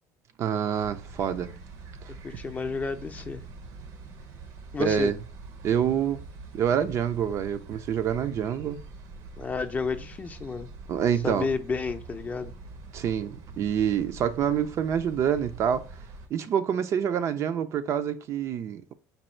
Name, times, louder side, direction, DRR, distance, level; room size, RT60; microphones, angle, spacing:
voice 1, 0.4-1.6 2.0-2.1 4.8-5.2 5.6-6.2 6.5-8.8 10.9-11.5 12.9-15.9 16.3-18.9, right 8 dB, 50° right, 0.5 m, -27 dB
sound 1, 0.7-16.3, right 3 dB, 70° right, 0.8 m, -44 dB
voice 2, 2.2-3.4 4.7-5.1 9.4-10.7 11.2-12.5, left 4 dB, 25° left, 0.5 m, -31 dB
5.3 x 2.3 x 4.3 m
cardioid pair, 120°, 7 cm